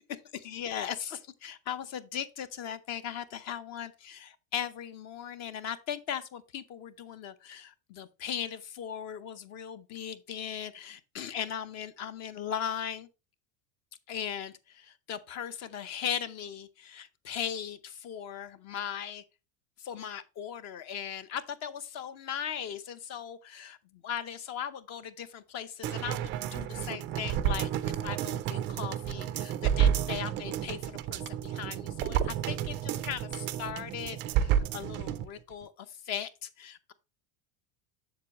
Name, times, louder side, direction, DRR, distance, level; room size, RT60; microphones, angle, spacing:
voice 1, 0.3-13.1 14.1-19.2 19.8-36.9, left 8 dB, 35° left, 0.8 m, -38 dB
sound 1, 25.8-35.3 35.6-35.7, right 10 dB, 30° right, 0.4 m, -31 dB
7.3 x 7.2 x 3.0 m
cardioid pair, 170°, 42 cm